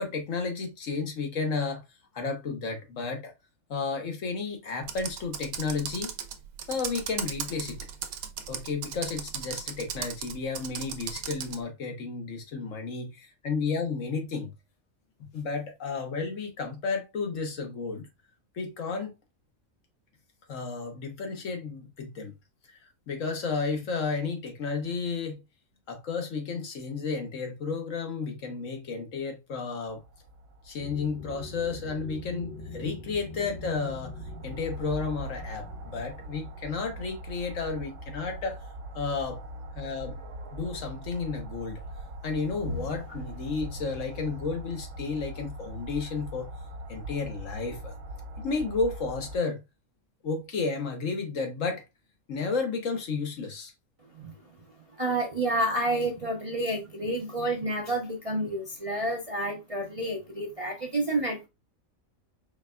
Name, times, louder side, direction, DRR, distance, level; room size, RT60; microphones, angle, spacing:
voice 1, 0.0-1.8 2.1-3.3 3.7-6.1 6.7-7.8 8.5-14.5 15.2-18.1 18.5-19.1 20.5-22.3 22.7-22.8 23.1-25.4 25.9-30.0 30.6-38.6 38.9-39.4 39.8-40.2 40.5-41.8 42.2-46.5 46.9-47.9 48.4-49.6 50.2-51.8 52.3-53.7, left 4 dB, 65° left, 1.3 m, -32 dB
Computer keyboard, 4.8-11.6, right 8 dB, 90° right, 1.1 m, -37 dB
sound 1, 29.9-49.4, right 1 dB, 65° right, 0.9 m, -41 dB
sound 2, 30.8-38.7, left 2 dB, 45° left, 0.5 m, -44 dB
voice 2, 54.9-61.5, right 1 dB, 35° right, 0.6 m, -29 dB
4.6 x 3.3 x 2.3 m
omnidirectional pair, 1.5 m